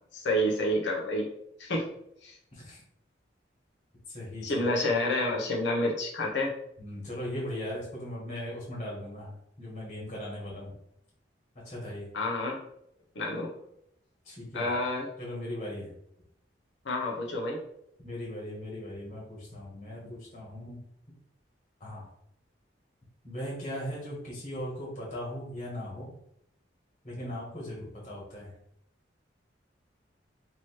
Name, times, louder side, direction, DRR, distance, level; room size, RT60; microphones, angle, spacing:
voice 1, 0.1-1.3 1.6-1.9 2.2-2.4 4.4-6.5 12.1-12.6 13.1-13.5 14.5-15.1 16.8-17.6, left 1 dB, 75° left, -1 dB, 0.9 m, -29 dB
voice 2, 2.5-2.8 4.1-4.7 6.8-10.7 11.6-12.1 14.2-14.7 15.2-15.9 18.0-20.8 21.8-22.1 23.2-26.1 27.0-28.5, left 1 dB, 35° left, -5 dB, 1.7 m, -38 dB
3.1 x 3.0 x 4.6 m, 0.74 s
head